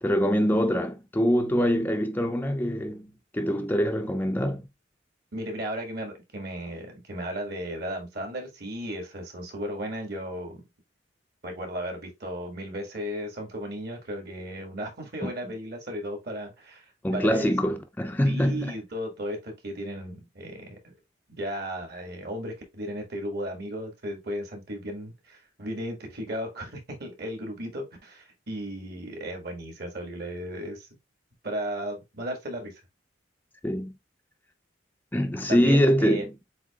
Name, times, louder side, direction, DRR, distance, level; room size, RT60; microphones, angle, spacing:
voice 1, 0.0-4.7 15.2-15.3 17.0-18.7 33.6-33.9 35.1-36.3, equal, 10° left, 0.5 m, -24 dB
voice 2, 5.3-10.6 11.4-16.9 17.1-17.5 18.2-20.9 21.3-30.9 31.4-32.7 35.5-36.2, equal, 60° right, 1.8 m, -35 dB
7.6 x 2.9 x 2.3 m
head